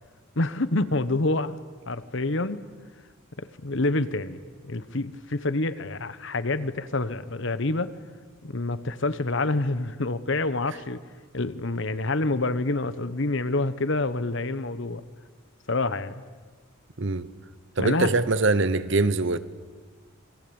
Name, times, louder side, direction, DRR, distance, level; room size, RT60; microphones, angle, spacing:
voice 1, 0.4-1.6 1.9-2.6 3.4-8.0 8.4-11.0 11.3-15.0 15.7-16.2 17.8-18.2, left 2 dB, 55° left, 1.1 m, -27 dB
voice 2, 17.8-19.4, right 3 dB, 55° right, 1.1 m, -23 dB
28.0 x 22.0 x 8.8 m
head